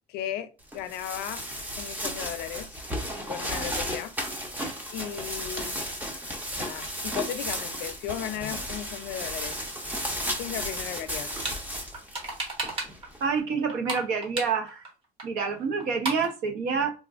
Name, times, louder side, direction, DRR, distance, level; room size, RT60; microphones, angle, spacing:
voice 1, 0.1-1.4 1.8-2.8 3.2-4.1 4.9-5.8 6.6-9.6 10.4-11.3, left 10 dB, 85° left, 0.5 m, -36 dB
sound 1, 0.7-13.2, equal, 10° right, 0.6 m, -34 dB
sound 2, 11.1-11.6 11.9-13.1 13.4-14.9 15.2-15.3 15.5-15.6 15.8-16.3, right 2 dB, 35° right, 1.0 m, -33 dB
voice 2, 13.2-14.8 15.2-16.9, right 5 dB, 75° right, 0.9 m, -27 dB
3.6 x 2.6 x 2.4 m
cardioid pair, 175°, 16 cm